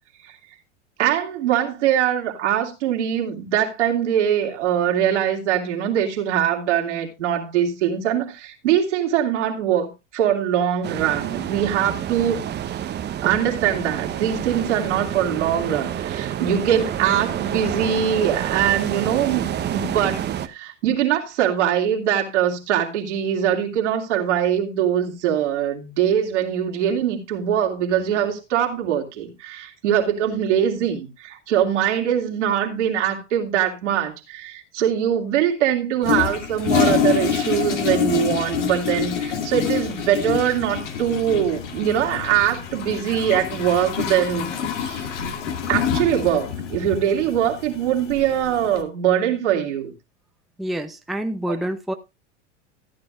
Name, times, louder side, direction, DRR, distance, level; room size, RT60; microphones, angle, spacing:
voice 1, 1.0-12.8 13.2-20.2 20.4-44.5 44.8-45.1 45.7-49.9 51.5-51.6, right 9 dB, 70° right, 2.9 m, -22 dB
sound 1, 10.8-20.5, right 10 dB, 30° right, 1.0 m, -28 dB
Toilet flush, 36.0-48.8, left 7 dB, 80° left, 2.3 m, -26 dB
voice 2, 50.6-51.9, right 1 dB, ahead, 0.8 m, -27 dB
14.5 x 9.9 x 2.5 m
hypercardioid pair, 95°, 36 cm